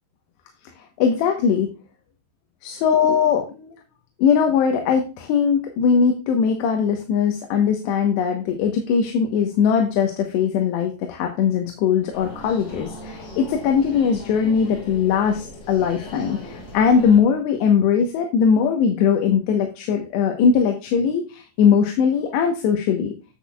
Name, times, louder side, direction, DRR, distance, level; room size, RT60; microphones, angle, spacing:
voice 1, 1.0-1.7 2.6-3.8 4.2-23.1, left 6 dB, 75° left, 4 dB, 3.1 m, -20 dB
sound 1, 12.1-17.2, left 1 dB, 45° left, 5.4 m, -39 dB
10.0 x 7.8 x 2.3 m, 0.33 s
omnidirectional pair, 5.3 m